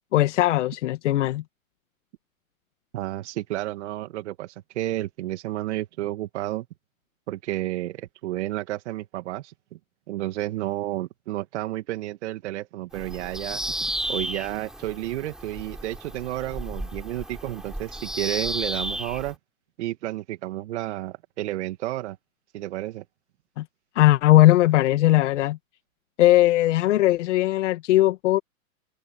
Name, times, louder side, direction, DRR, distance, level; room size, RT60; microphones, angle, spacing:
voice 1, 0.1-1.4 23.6-23.7 24.0-25.6 26.2-28.4, left 15 dB, 55° left, 1.7 m, -19 dB
voice 2, 2.9-6.7 7.3-9.8 10.1-19.4 19.8-22.2 22.5-23.0, right 15 dB, 50° right, 1.9 m, -31 dB
Bird vocalization bird call bird song, 12.9-19.3, right 1 dB, ahead, 5.0 m, -33 dB
hypercardioid pair, 150°, 43 cm